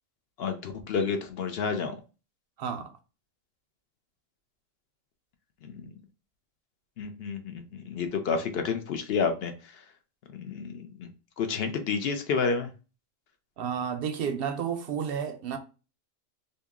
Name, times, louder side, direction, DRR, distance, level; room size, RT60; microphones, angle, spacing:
voice 1, 0.4-2.0 5.6-5.9 7.0-9.8 10.4-11.1 11.4-12.7, left 5 dB, 60° left, 0.7 m, -30 dB
voice 2, 2.6-2.9 13.6-15.6, right 7 dB, 60° right, 0.6 m, -31 dB
2.8 x 2.6 x 3.5 m
omnidirectional pair, 1.3 m